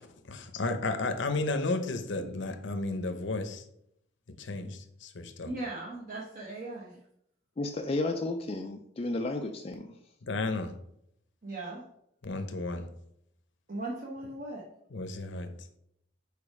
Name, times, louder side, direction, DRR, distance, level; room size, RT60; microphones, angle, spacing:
voice 1, 0.3-3.6 4.3-5.5 10.2-10.7 12.2-12.9 14.9-15.5, left 2 dB, 60° left, 7 dB, 0.7 m, -33 dB
voice 2, 5.4-7.0 11.4-11.8 13.7-14.6, right 2 dB, 40° right, -5 dB, 1.0 m, -38 dB
voice 3, 7.6-9.9, left 2 dB, 30° left, 4 dB, 0.3 m, -32 dB
5.0 x 4.8 x 4.8 m, 0.76 s
head